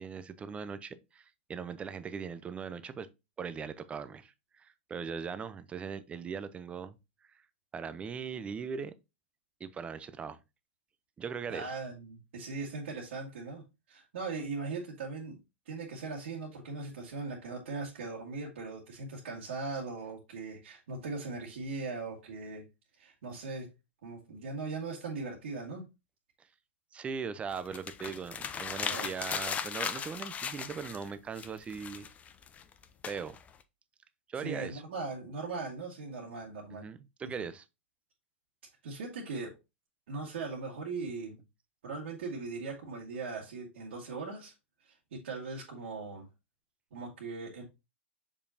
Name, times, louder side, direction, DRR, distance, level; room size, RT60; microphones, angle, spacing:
voice 1, 0.0-3.1 3.4-7.0 7.7-8.9 9.6-10.4 11.2-11.6 26.9-32.1 33.0-33.4 34.3-34.8 36.7-37.6, right 6 dB, 15° right, 0.6 m, -39 dB
voice 2, 11.5-13.6 13.9-15.4 15.7-22.6 23.0-23.7 24.0-25.8 28.9-29.1 34.4-36.9 38.8-39.6 40.1-41.4 41.8-44.5 44.8-46.3 46.9-47.6, right 3 dB, 65° right, 1.9 m, -39 dB
sound 1, 27.5-31.1 31.4-33.6, left 7 dB, 20° left, 0.6 m, -37 dB
6.8 x 5.1 x 2.8 m
hypercardioid pair, 115°, 7 cm